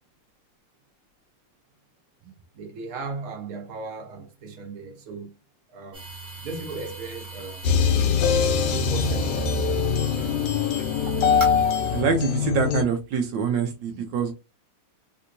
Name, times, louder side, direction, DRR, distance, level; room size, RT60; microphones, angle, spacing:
voice 1, 2.5-5.3 5.7-6.0 6.4-7.6 8.7-9.5 10.1-10.3 11.1-11.2, right 4 dB, 55° right, 1.3 m, -36 dB
sound 1, 5.9-12.0, right 2 dB, 30° right, 1.2 m, -39 dB
sound 2, 7.6-12.8, left 6 dB, 75° left, 1.3 m, -22 dB
voice 2, 11.9-14.3, right 6 dB, 75° right, 1.3 m, -25 dB
3.4 x 2.8 x 2.5 m
omnidirectional pair, 2.0 m